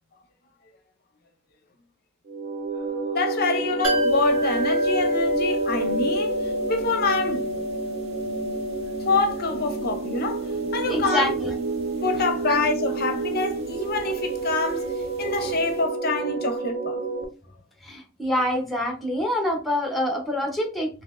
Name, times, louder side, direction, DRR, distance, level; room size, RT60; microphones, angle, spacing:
sound 1, 2.3-17.2, right 3 dB, 45° right, 0.5 m, -30 dB
voice 1, 3.0-7.5 9.1-11.4 12.0-14.8 15.2-17.0, left 3 dB, 50° left, 0.5 m, -26 dB
sound 2, 3.8-15.5 15.7-15.8, equal, 85° right, 1.4 m, -30 dB
voice 2, 10.9-11.5 12.5-12.6 17.8-20.9, left 1 dB, ahead, 0.6 m, -26 dB
3.9 x 2.7 x 2.4 m
head